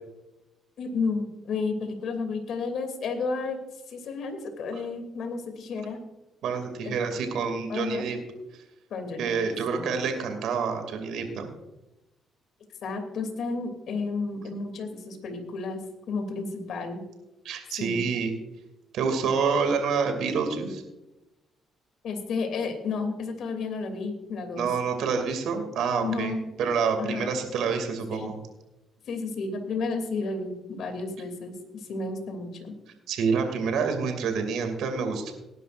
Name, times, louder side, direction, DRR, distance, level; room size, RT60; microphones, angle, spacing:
voice 1, 0.8-3.6 3.9-6.0 6.8-6.9 7.7-8.1 8.9-9.3 9.7-9.9 12.8-17.0 17.8-18.0 22.0-24.7 26.0-26.4 27.0-27.4 28.1-28.3 29.1-32.8, left 4 dB, 70° left, 6 dB, 2.8 m, -32 dB
voice 2, 6.4-8.2 9.2-11.5 17.4-18.3 18.9-20.8 24.6-26.3 26.6-28.4 33.1-35.3, right 5 dB, 80° right, 6 dB, 2.4 m, -27 dB
19.0 x 11.0 x 2.5 m, 0.97 s
cardioid pair, 90°, 0 cm